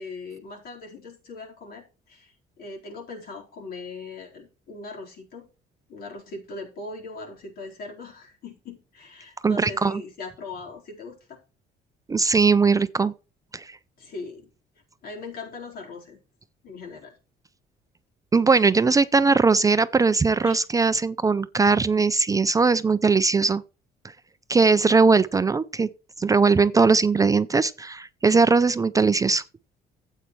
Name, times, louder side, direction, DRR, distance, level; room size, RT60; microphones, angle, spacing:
voice 1, 0.0-5.5 5.9-11.4 14.0-14.5 15.0-16.2 16.6-17.1 20.4-20.6, left 3 dB, 65° left, 4.3 m, -40 dB
voice 2, 9.4-10.0 12.1-13.1 13.5-13.8 18.3-23.6 24.5-25.9 26.2-29.4, right 4 dB, 20° right, 0.4 m, -20 dB
13.0 x 8.2 x 3.2 m
cardioid pair, 110°, 17 cm